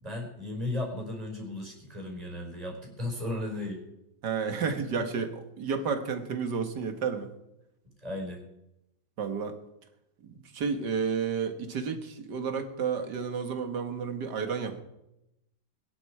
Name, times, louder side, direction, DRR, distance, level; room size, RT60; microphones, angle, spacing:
voice 1, 0.0-3.8 8.0-8.4, left 2 dB, 20° right, 1 dB, 5.0 m, -35 dB
voice 2, 4.2-7.3 9.2-9.6 10.2-14.8, right 6 dB, 60° right, 7 dB, 2.1 m, -31 dB
21.5 x 11.5 x 4.9 m, 0.88 s
omnidirectional pair, 2.1 m